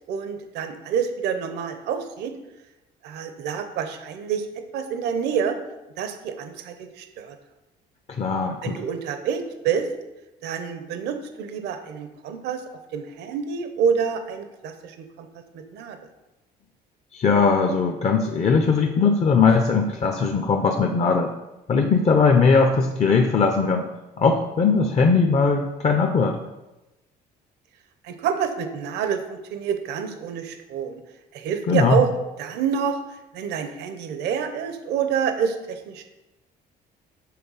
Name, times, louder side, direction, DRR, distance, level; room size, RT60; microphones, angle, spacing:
voice 1, 0.1-2.3 3.0-4.5 4.7-5.6 6.0-7.3 8.6-9.9 10.4-12.6 12.9-15.3 15.5-16.0 28.0-31.0 31.3-32.1 32.4-33.0 33.3-36.0, right 7 dB, 80° right, 7 dB, 0.8 m, -27 dB
voice 2, 8.1-8.7 17.1-21.3 21.7-23.9 24.2-26.4 31.7-32.0, left 4 dB, 40° left, 3 dB, 0.7 m, -19 dB
7.6 x 3.6 x 5.5 m, 1.0 s
cardioid pair, 110°, 17 cm